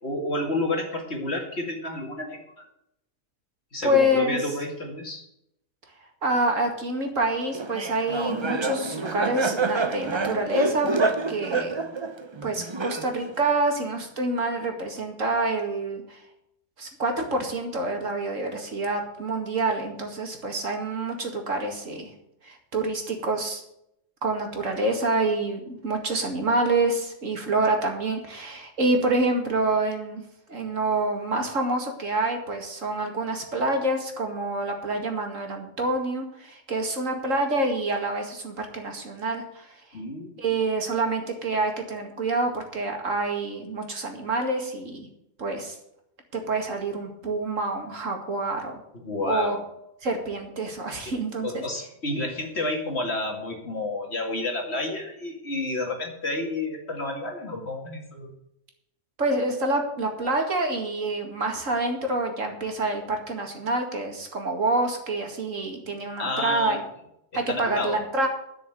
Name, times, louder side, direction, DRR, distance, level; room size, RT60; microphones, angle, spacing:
voice 1, 0.0-2.7 3.7-5.2 39.9-40.4 48.9-49.6 51.1-51.2 51.4-58.3 66.2-66.8 67.3-68.0, left 2 dB, 50° left, 2 dB, 2.6 m, -30 dB
voice 2, 3.8-4.4 6.2-11.7 12.4-16.2 16.8-22.1 22.4-23.6 24.2-30.2 30.5-39.8 40.4-45.1 45.4-45.8 46.3-48.8 49.2-49.6 50.0-51.6 59.2-66.8 67.3-68.3, right 2 dB, 65° right, 3 dB, 2.5 m, -27 dB
Laughter, 7.5-13.4, right 3 dB, 25° right, 0.6 m, -28 dB
11.5 x 6.6 x 7.8 m, 0.79 s
omnidirectional pair, 1.5 m